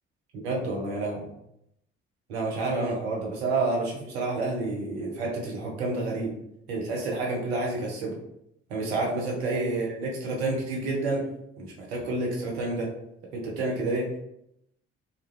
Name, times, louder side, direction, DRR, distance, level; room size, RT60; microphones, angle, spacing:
voice 1, 0.4-1.3 2.3-6.4 6.7-8.2 8.7-11.3 11.6-12.9 13.3-14.2, right 2 dB, 75° right, -2 dB, 0.7 m, -29 dB
2.3 x 2.0 x 3.0 m, 0.79 s
figure-of-eight pair, 40°, 33 cm